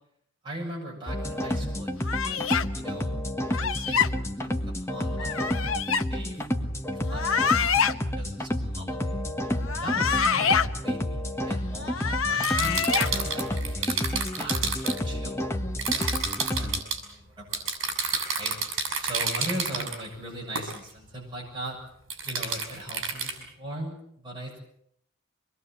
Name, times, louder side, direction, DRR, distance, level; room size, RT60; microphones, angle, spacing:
voice 1, 0.4-3.2 3.6-9.2 9.8-21.8 22.2-24.6, right 1 dB, 20° right, -2 dB, 7.4 m, -40 dB
sound 1, 1.1-16.8, left 1 dB, 10° left, 1.5 m, -30 dB
sound 2, 2.0-2.7 3.5-4.1 5.2-6.0 7.1-7.9 9.6-10.7 11.8-13.1, left 6 dB, 75° left, 1.1 m, -25 dB
sound 3, 12.4-15.0 15.8-17.0 17.5-20.0 20.6-20.8 22.1-23.3, right 5 dB, 65° right, 6.3 m, -29 dB
24.5 x 21.0 x 7.8 m, 0.73 s
head